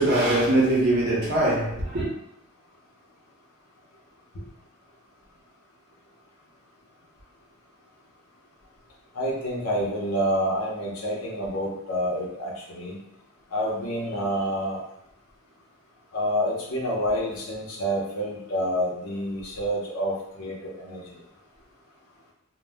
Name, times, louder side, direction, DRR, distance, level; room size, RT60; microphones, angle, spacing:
voice 1, 0.0-2.1, right 1 dB, 50° right, 0.9 m, -22 dB
voice 2, 9.1-13.0 13.5-14.8 16.1-21.2, equal, 80° left, 0.8 m, -28 dB
2.3 x 2.1 x 3.4 m
head